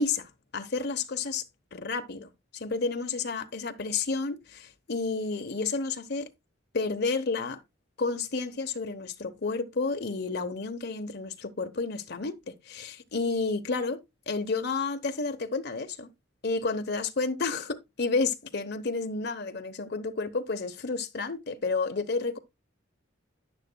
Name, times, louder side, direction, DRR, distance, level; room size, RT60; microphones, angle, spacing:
voice 1, 0.0-1.4 1.7-6.3 6.7-7.6 8.0-14.0 14.3-16.1 16.4-22.4, left 4 dB, 55° left, 0.9 m, -31 dB
9.7 x 9.6 x 2.2 m
head